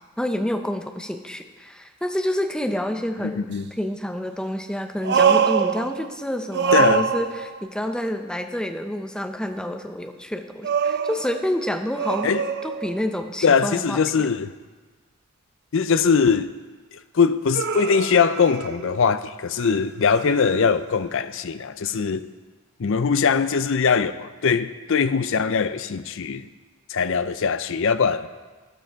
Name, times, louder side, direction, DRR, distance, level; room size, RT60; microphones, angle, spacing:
voice 1, 0.2-3.5 3.8-12.3 12.6-14.0, left 1 dB, 5° left, 0.7 m, -28 dB
voice 2, 3.2-3.7 6.7-7.1 12.2-12.4 13.4-14.5 15.7-16.5 17.1-22.3 22.8-26.5 26.9-28.3, left 5 dB, 65° left, 0.5 m, -21 dB
sound 1, 3.5-3.6 5.0-6.3 6.5-7.7 10.6-13.2 17.5-19.2 19.6-21.0 22.0-22.1, right 6 dB, 50° right, 0.5 m, -25 dB
12.0 x 11.5 x 4.6 m
head